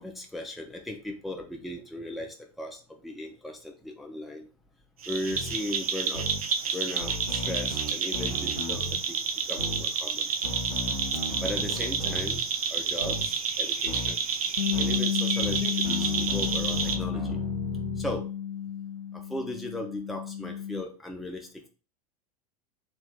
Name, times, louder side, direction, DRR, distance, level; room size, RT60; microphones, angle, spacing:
voice 1, 0.0-2.8 3.0-4.5 5.1-6.2 6.7-8.8 9.1-9.2 9.5-10.3 11.4-12.4 12.7-14.2 14.8-17.4 18.0-18.3 19.3-21.7, left 1 dB, ahead, 2 dB, 0.5 m, -37 dB
sound 1, 5.0-17.0, right 6 dB, 65° right, 0.6 m, -30 dB
sound 2, 5.3-5.5 6.1-6.4 7.0-9.0 9.6-9.8 10.4-12.4 13.0-13.3 13.9-14.1 14.7-15.0 15.4-18.2, left 1 dB, 90° right, 1.4 m, -35 dB
Bass guitar, 14.6-20.8, left 9 dB, 60° left, 0.5 m, -32 dB
3.4 x 2.5 x 3.9 m, 0.35 s
figure-of-eight pair, 85°, 20 cm